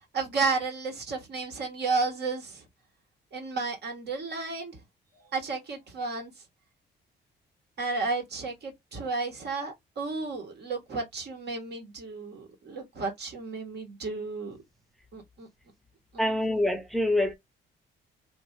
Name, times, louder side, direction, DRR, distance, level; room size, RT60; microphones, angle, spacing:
voice 1, 0.1-2.6 3.3-4.7 5.3-6.3 7.8-14.6 15.1-15.5 16.1-16.5, right 4 dB, 55° right, 1.7 m, -32 dB
voice 2, 16.2-17.3, left 1 dB, ahead, 0.8 m, -25 dB
2.9 x 2.2 x 3.2 m
cardioid pair, 90°, 20 cm